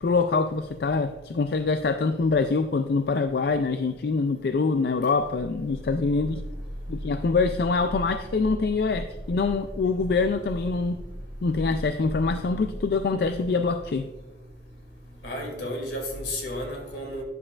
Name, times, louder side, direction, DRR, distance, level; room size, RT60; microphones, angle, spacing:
voice 1, 0.0-6.4 6.9-11.0 11.4-14.1, left 4 dB, 60° left, 0.4 m, -25 dB
sound 1, 5.1-14.2, equal, 25° right, 1.6 m, -38 dB
voice 2, 15.2-17.2, left 1 dB, 80° left, 2.5 m, -32 dB
10.5 x 7.4 x 2.4 m
head